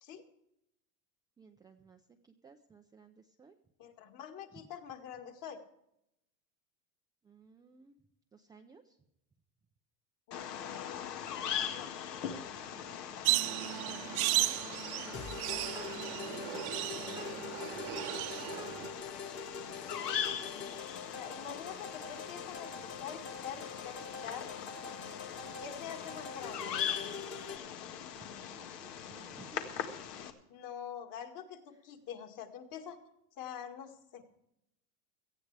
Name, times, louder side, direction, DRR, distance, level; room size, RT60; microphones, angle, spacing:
voice 1, 1.4-3.6 4.5-4.7 7.2-8.0 8.3-9.0 12.6-13.0 13.7-14.4 15.8-18.3 21.5-21.8 28.1-30.0, right 5 dB, 10° right, 3 dB, 0.4 m, -58 dB
voice 2, 3.8-5.6 10.3-11.9 13.8-14.0 21.2-24.5 25.6-26.8 30.5-33.0 33.4-34.2, left 8 dB, 45° left, 5 dB, 2.0 m, -46 dB
Bird vocalization bird call bird song, 10.3-30.3, left 8 dB, 80° left, 1.8 m, -41 dB
sound 1, 13.2-18.9, right 18 dB, 65° right, 1.0 m, -35 dB
sound 2, 15.1-27.6, left 5 dB, 25° left, 1.3 m, -45 dB
17.5 x 14.0 x 3.3 m, 0.82 s
supercardioid pair, 125°, 47 cm